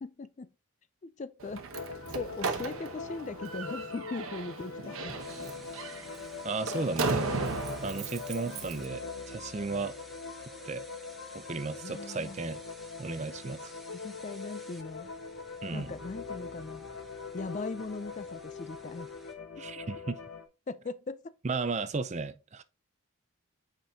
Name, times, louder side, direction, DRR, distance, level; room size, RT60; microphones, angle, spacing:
voice 1, 0.0-0.5 1.0-1.7 2.1-5.1 11.8-12.4 13.6-15.1 15.7-16.8 17.3-19.1 19.6-19.7 20.7-21.3, left 3 dB, 35° left, 0.3 m, -39 dB
Slam, 1.4-8.9, right 4 dB, 70° right, 1.0 m, -36 dB
sound 1, 1.7-20.5, left 4 dB, 75° left, 1.0 m, -43 dB
sound 2, 5.2-19.3, equal, ahead, 0.8 m, -54 dB
voice 2, 6.4-7.3 7.8-10.0 10.7-10.8 11.3-12.6 13.0-13.7 15.6-15.9 19.6-20.2 21.4-22.6, right 3 dB, 30° right, 0.4 m, -34 dB
7.8 x 5.2 x 2.7 m
head